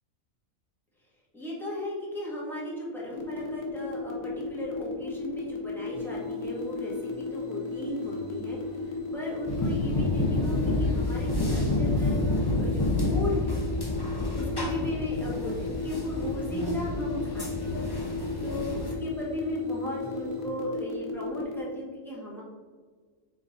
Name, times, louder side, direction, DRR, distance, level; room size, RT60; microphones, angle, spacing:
voice 1, 1.3-13.6 14.3-22.4, equal, ahead, -6 dB, 1.6 m, -36 dB
sound 1, 3.1-21.6, left 3 dB, 85° left, 1.4 m, -35 dB
sound 2, 5.9-20.4, right 1 dB, 45° right, 2.2 m, -48 dB
sound 3, 9.5-18.9, left 2 dB, 20° left, 0.8 m, -29 dB
5.9 x 3.8 x 4.2 m, 1.5 s
omnidirectional pair, 1.4 m